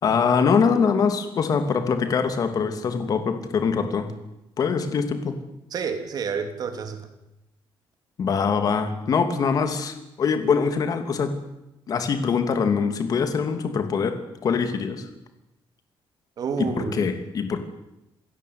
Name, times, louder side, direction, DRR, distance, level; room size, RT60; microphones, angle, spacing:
voice 1, 0.0-4.1 4.6-5.4 8.2-11.3 11.9-15.1 16.6-17.6, left 6 dB, 45° left, 8 dB, 2.8 m, -23 dB
voice 2, 5.7-7.0 16.4-17.1, right 5 dB, 45° right, 7 dB, 3.2 m, -29 dB
28.0 x 16.5 x 9.6 m, 0.91 s
cardioid pair, 170°, 9 cm